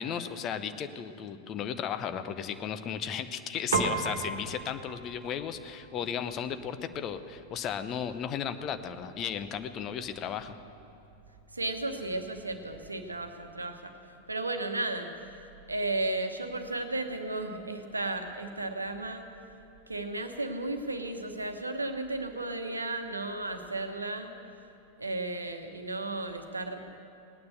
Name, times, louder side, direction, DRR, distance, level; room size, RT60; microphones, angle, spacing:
voice 1, 0.0-10.6, left 8 dB, 30° left, 10 dB, 0.8 m, -35 dB
Piano, 3.7-13.3, right 4 dB, 65° right, 1.3 m, -39 dB
voice 2, 11.5-13.9 14.3-15.1 15.7-19.3 19.9-24.3 25.0-27.0, right 2 dB, 80° right, 6 dB, 1.1 m, -34 dB
18.5 x 9.6 x 7.9 m, 2.7 s
figure-of-eight pair, 90°, 0 cm